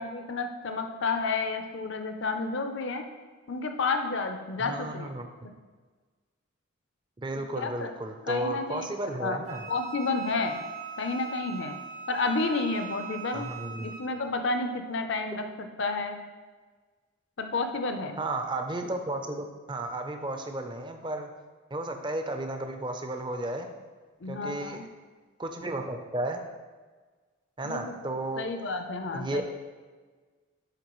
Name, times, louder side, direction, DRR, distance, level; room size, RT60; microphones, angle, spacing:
voice 1, 0.0-3.0 3.5-5.1 7.6-7.9 8.3-9.4 9.7-10.6 11.0-11.8 12.1-13.4 13.8-16.2 17.4-18.2 24.2-24.8 27.6-29.4, left 3 dB, 55° left, 6 dB, 0.6 m, -31 dB
voice 2, 4.6-5.3 7.2-9.6 13.3-13.9 18.2-21.3 21.7-23.7 24.3-24.8 25.4-26.4 27.6-28.5 29.1-29.4, right 1 dB, 20° right, 5 dB, 0.5 m, -33 dB
Wind instrument woodwind instrument, 9.5-14.1, right 6 dB, 85° right, 1.7 m, -41 dB
11.5 x 4.5 x 3.1 m, 1.4 s
head